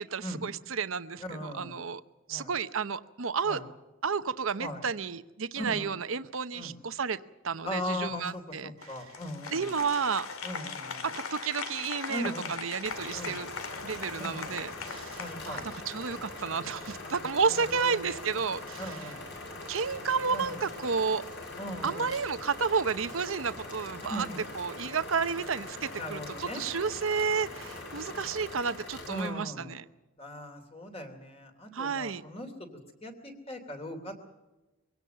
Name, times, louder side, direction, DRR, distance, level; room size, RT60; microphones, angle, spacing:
voice 1, 0.0-2.0 2.3-3.6 4.0-9.0 9.5-10.3 11.0-13.5 13.8-19.1 19.7-21.2 21.8-24.3 24.5-29.8 31.7-32.2, right 5 dB, 70° right, 13 dB, 0.8 m, -31 dB
voice 2, 1.2-1.7 2.3-2.5 3.4-3.6 4.6-4.8 5.5-5.9 6.5-6.7 7.6-9.8 10.4-11.0 12.1-12.5 13.1-13.4 14.2-14.6 15.2-15.6 17.1-18.2 18.8-19.3 20.3-20.6 21.6-22.1 24.1-24.4 25.9-26.6 29.1-29.7 30.2-32.5 33.0-34.3, left 1 dB, 25° left, 5 dB, 3.0 m, -39 dB
Applause, 8.8-16.4, left 5 dB, 85° left, 2.1 m, -40 dB
sound 1, 12.8-29.3, left 2 dB, 55° left, 6.1 m, -42 dB
23.5 x 17.5 x 6.8 m, 1.1 s
head